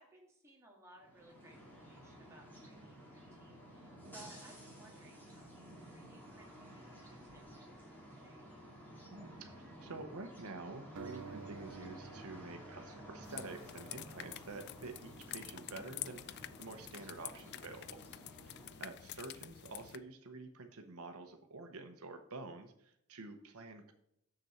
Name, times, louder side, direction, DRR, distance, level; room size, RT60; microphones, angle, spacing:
voice 1, 0.0-8.5 18.8-19.1, right 2 dB, 15° right, -2 dB, 1.8 m, -62 dB
sound 1, 1.0-19.1, equal, 10° left, 2.3 m, -54 dB
voice 2, 9.1-18.0 18.5-23.9, right 3 dB, 75° right, 6 dB, 0.9 m, -49 dB
sound 2, 11.0-14.2, right 5 dB, 55° right, 0.6 m, -52 dB
sound 3, 13.2-20.0, left 13 dB, 50° left, 0.3 m, -48 dB
6.9 x 6.6 x 4.4 m, 0.75 s
head